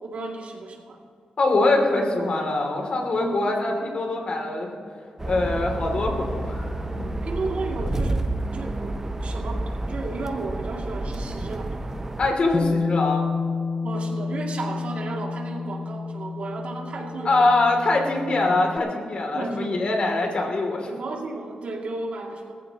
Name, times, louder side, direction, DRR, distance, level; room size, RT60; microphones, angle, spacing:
voice 1, 0.0-1.0 3.1-3.8 7.2-11.8 13.8-17.5 19.3-19.8 20.8-22.5, right 3 dB, 65° right, 0 dB, 2.4 m, -34 dB
voice 2, 1.4-4.8 5.2-7.0 12.2-13.2 17.2-20.9, left 2 dB, 50° left, 1 dB, 2.7 m, -23 dB
sound 1, 5.2-12.3, right 1 dB, 20° right, 0.7 m, -29 dB
Bass guitar, 12.5-18.8, left 4 dB, 25° left, 0.5 m, -29 dB
19.5 x 14.5 x 2.9 m, 2.3 s
wide cardioid pair, 115°, 2 cm